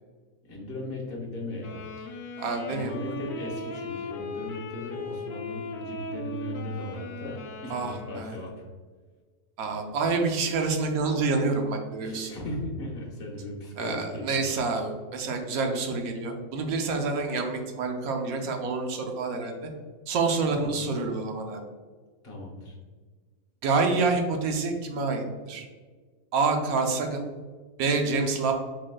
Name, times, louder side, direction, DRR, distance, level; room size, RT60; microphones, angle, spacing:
voice 1, 0.5-1.8 2.7-8.5 12.0-14.5 20.6-20.7 22.2-22.7, left 1 dB, 45° left, -2 dB, 1.3 m, -37 dB
Wind instrument woodwind instrument, 1.6-8.8, left 2 dB, 65° left, 0.8 m, -38 dB
voice 2, 2.4-3.0 7.7-8.4 9.6-12.3 13.8-19.5 20.1-21.6 23.6-25.6 26.3-27.2 27.8-28.5, right 4 dB, 90° right, 4 dB, 1.2 m, -27 dB
5.0 x 3.8 x 2.2 m, 1.5 s
omnidirectional pair, 1.5 m